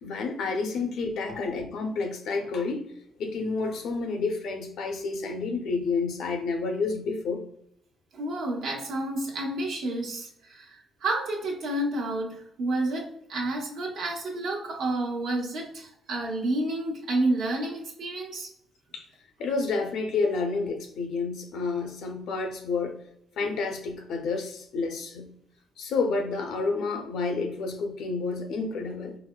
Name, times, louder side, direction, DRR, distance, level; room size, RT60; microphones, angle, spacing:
voice 1, 0.0-2.9 3.2-7.4 18.9-19.1 19.4-23.0 23.4-25.3 25.8-29.2, left 4 dB, 80° left, 4 dB, 0.6 m, -29 dB
voice 2, 8.1-18.5 23.4-23.6, right 2 dB, 75° right, -1 dB, 0.9 m, -30 dB
4.0 x 2.1 x 2.3 m, 0.70 s
cardioid pair, 90°, 0 cm